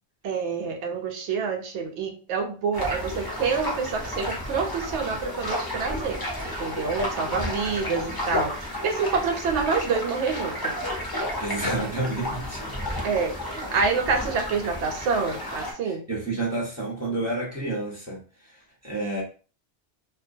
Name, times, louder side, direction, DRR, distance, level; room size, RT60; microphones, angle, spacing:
voice 1, 0.2-10.8 13.0-16.0, right 5 dB, 80° right, 4 dB, 0.9 m, -27 dB
sound 1, 2.7-15.7, left 1 dB, 30° left, 0.5 m, -32 dB
voice 2, 11.4-13.0 15.8-18.5 18.8-19.2, right 2 dB, 15° right, -4 dB, 0.7 m, -30 dB
2.2 x 2.2 x 2.5 m, 0.36 s
omnidirectional pair, 1.2 m